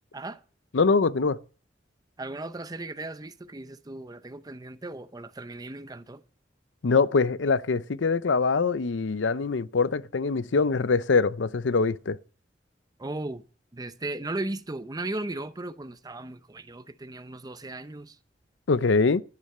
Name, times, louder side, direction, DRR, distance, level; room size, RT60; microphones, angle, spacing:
voice 1, 0.7-1.4 6.8-12.2 18.7-19.2, left 4 dB, 80° left, 0.6 m, -23 dB
voice 2, 2.2-6.2 13.0-13.4 13.7-18.2, right 2 dB, 20° right, 0.7 m, -36 dB
12.5 x 10.0 x 5.5 m
head